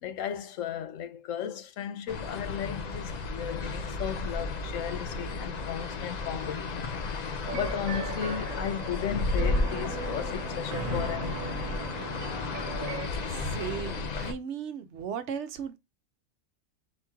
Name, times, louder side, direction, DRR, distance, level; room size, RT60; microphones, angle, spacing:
voice 1, 0.0-11.6, left 9 dB, 75° left, 1.0 m, -35 dB
sound 1, 2.1-14.3, left 3 dB, 50° left, 0.5 m, -33 dB
sound 2, 7.4-13.1, right 7 dB, 90° right, 1.1 m, -39 dB
voice 2, 13.3-15.8, right 6 dB, 65° right, 0.9 m, -36 dB
4.4 x 2.9 x 3.5 m
omnidirectional pair, 1.3 m